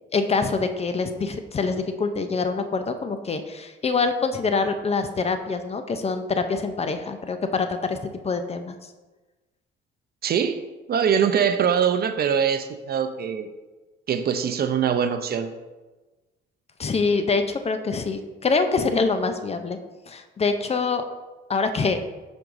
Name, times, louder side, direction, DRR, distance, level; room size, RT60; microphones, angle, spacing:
voice 1, 0.1-8.0 8.2-8.9 16.8-19.8 20.1-21.0 21.5-22.0, left 4 dB, 30° left, 8 dB, 0.5 m, -25 dB
voice 2, 10.2-10.6 10.9-13.5 14.1-15.5, right 7 dB, 50° right, 9 dB, 0.5 m, -23 dB
7.6 x 5.3 x 2.6 m, 1.2 s
cardioid pair, 90°, 20 cm